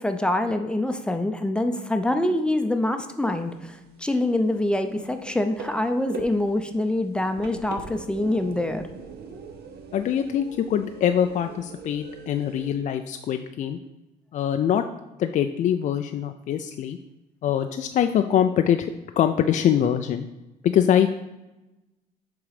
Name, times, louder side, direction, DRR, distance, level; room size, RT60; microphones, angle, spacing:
voice 1, 0.0-8.9, left 1 dB, 5° left, 7 dB, 0.6 m, -25 dB
sound 1, 3.2-3.7 4.0-12.7, right 5 dB, 70° right, 0.9 m, -41 dB
voice 2, 9.9-13.8 14.3-14.9 15.2-17.0 17.4-20.3 20.6-21.1, left 9 dB, 45° left, 7 dB, 0.4 m, -23 dB
7.0 x 3.9 x 4.8 m, 1.0 s
cardioid pair, 110°, 17 cm